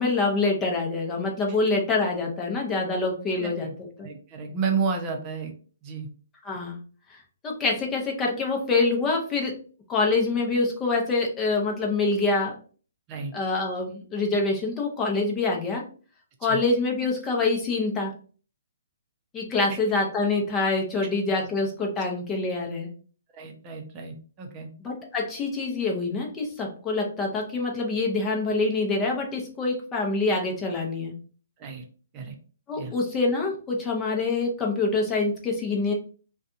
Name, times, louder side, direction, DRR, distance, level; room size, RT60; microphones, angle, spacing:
voice 1, 0.0-4.1 6.4-6.8 7.4-9.5 9.9-12.5 13.3-15.8 16.4-18.1 19.3-22.9 24.8-31.1 32.7-35.9, left 3 dB, 15° left, 0 dB, 0.7 m, -26 dB
voice 2, 3.4-3.7 4.0-5.5 5.8-6.1 13.1-13.3 16.4-16.6 23.3-24.7 31.6-31.9 32.1-32.4 32.8-32.9, right 5 dB, 30° right, 3 dB, 0.6 m, -31 dB
2.5 x 2.3 x 2.5 m, 0.41 s
hypercardioid pair, 135°, 0 cm